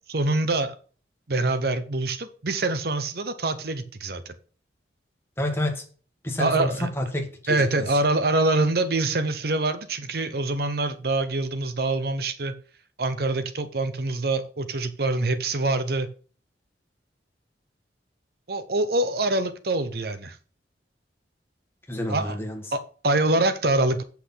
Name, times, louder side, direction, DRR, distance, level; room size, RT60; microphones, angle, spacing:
voice 1, 0.1-0.7 1.3-4.3 6.4-6.9 7.5-12.5 13.0-16.1 18.5-20.4 22.1-22.4 22.7-24.0, right 2 dB, 55° right, 0.8 m, -25 dB
voice 2, 5.4-5.8 6.2-6.7 6.9-7.7 21.9-22.6, left 1 dB, 15° left, 1.7 m, -28 dB
8.3 x 5.8 x 5.7 m
head